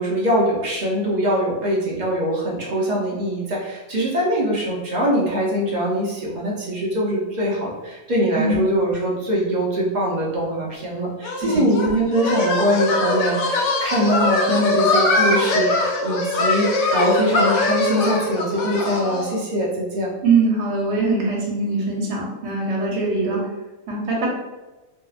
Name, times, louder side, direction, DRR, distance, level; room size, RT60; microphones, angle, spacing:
voice 1, 0.0-20.1, equal, 50° right, -4 dB, 0.6 m, -22 dB
sound 1, 11.2-19.3, left 2 dB, 80° left, 0.9 m, -22 dB
voice 2, 20.2-23.4 23.9-24.3, right 3 dB, 70° right, -2 dB, 1.0 m, -22 dB
2.7 x 2.0 x 2.3 m, 1.1 s
omnidirectional pair, 1.2 m